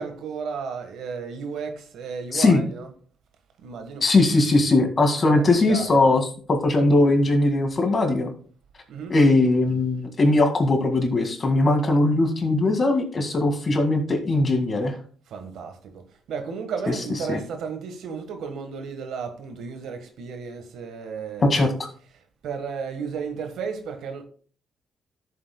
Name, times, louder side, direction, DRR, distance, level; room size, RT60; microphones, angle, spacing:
voice 1, 0.0-2.9 3.6-4.1 5.3-6.0 8.9-9.2 15.3-16.0 16.3-21.7 22.4-24.2, right 6 dB, 75° right, 1.4 m, -33 dB
voice 2, 4.0-8.3 9.1-15.0 16.9-17.0 17.3-17.4 21.5-21.7, left 2 dB, 35° left, 2.0 m, -20 dB
13.0 x 7.3 x 2.3 m
cardioid pair, 90°, 0 cm